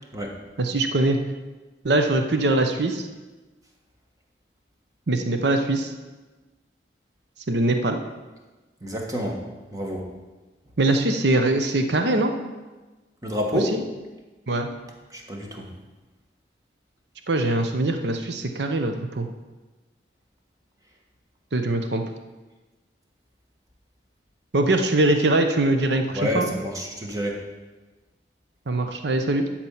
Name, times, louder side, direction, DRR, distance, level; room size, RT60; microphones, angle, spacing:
voice 1, 0.6-1.2 1.8-3.1 5.1-5.9 7.5-8.0 10.8-12.3 14.5-14.7 17.3-19.3 21.5-22.0 24.5-26.5 28.7-29.4, right 2 dB, 75° right, 6 dB, 0.8 m, -22 dB
voice 2, 8.8-9.4 9.7-10.1 13.2-13.7 15.1-15.7 26.1-27.4, equal, 20° right, 0 dB, 1.4 m, -28 dB
12.0 x 4.4 x 7.1 m, 1.2 s
head